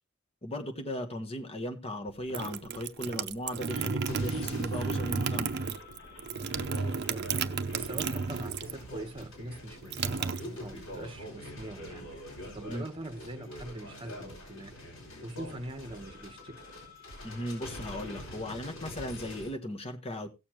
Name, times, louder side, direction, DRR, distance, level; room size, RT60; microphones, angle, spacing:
voice 1, 0.4-5.5 12.6-12.8 17.2-20.3, equal, 30° left, 1.4 m, -37 dB
sound 1, 2.1-8.9 9.1-11.0, right 5 dB, 55° right, 0.6 m, -33 dB
sound 2, 4.1-19.5, left 1 dB, 70° left, 5.8 m, -45 dB
voice 2, 6.7-14.8 15.2-16.6, right 1 dB, 25° right, 1.2 m, -43 dB
17.5 x 7.0 x 3.0 m
head